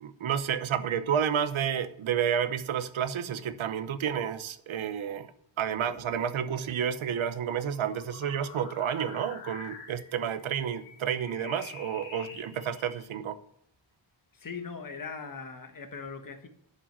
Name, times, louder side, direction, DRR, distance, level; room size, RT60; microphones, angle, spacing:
voice 1, 0.0-5.3 5.6-13.4, right 8 dB, 80° right, 0.9 m, -30 dB
sound 1, 5.7-13.1, left 5 dB, 70° left, 2.7 m, -48 dB
voice 2, 14.3-16.5, left 5 dB, 45° left, 1.4 m, -40 dB
11.5 x 5.5 x 7.4 m
wide cardioid pair, 130°, 47 cm